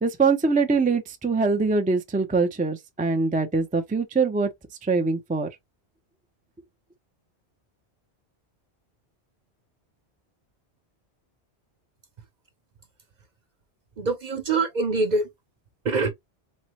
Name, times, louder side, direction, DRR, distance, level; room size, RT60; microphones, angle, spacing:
voice 1, 0.0-4.5 4.8-5.5, right 4 dB, 15° right, 0.3 m, -23 dB
voice 2, 14.0-15.3 15.8-16.1, right 3 dB, 50° right, 0.7 m, -24 dB
4.1 x 2.1 x 2.9 m
omnidirectional pair, 1.1 m